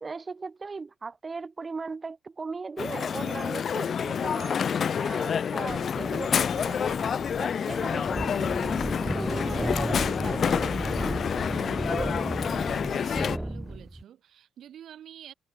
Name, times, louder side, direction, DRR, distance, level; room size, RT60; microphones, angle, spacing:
voice 1, 0.0-7.1 7.4-8.7 9.0-11.2 11.9-12.2, right 4 dB, 30° right, 2.2 m, -38 dB
Crowd, 2.8-13.4, left 7 dB, 50° left, 0.4 m, -28 dB
sound 1, 5.7-14.0, right 1 dB, 5° right, 0.7 m, -34 dB
voice 2, 12.9-15.3, right 10 dB, 70° right, 2.1 m, -48 dB
cardioid pair, 90°, 0 cm